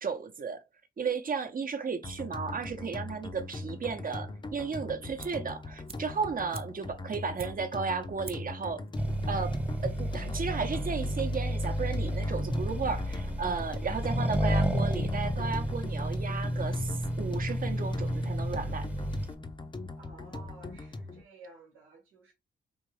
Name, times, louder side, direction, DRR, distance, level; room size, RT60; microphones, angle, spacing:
voice 1, 0.0-0.6 1.0-8.8 9.3-18.9, right 5 dB, 45° right, 0.9 m, -34 dB
sound 1, 2.0-21.2, left 2 dB, 25° left, 0.7 m, -41 dB
sound 2, 5.2-5.5 5.9-7.9 8.2-8.6 8.9-9.0, right 4 dB, 30° right, 0.5 m, -46 dB
Accelerating revving vroom, 9.0-19.3, equal, 5° right, 0.9 m, -31 dB
voice 2, 20.0-22.3, right 3 dB, 85° right, 1.1 m, -53 dB
3.6 x 2.7 x 3.2 m
supercardioid pair, 45°, 21 cm